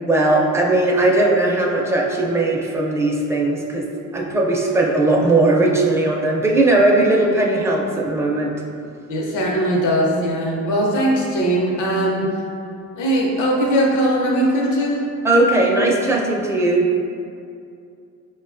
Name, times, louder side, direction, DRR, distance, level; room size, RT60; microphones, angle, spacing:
voice 1, 0.1-3.9 4.1-8.6 15.2-16.9, right 2 dB, 10° right, -2 dB, 0.4 m, -18 dB
voice 2, 9.1-12.3 12.9-15.1, right 1 dB, 75° left, -2 dB, 0.8 m, -20 dB
5.0 x 2.2 x 2.4 m, 2.5 s
cardioid pair, 90°, 30 cm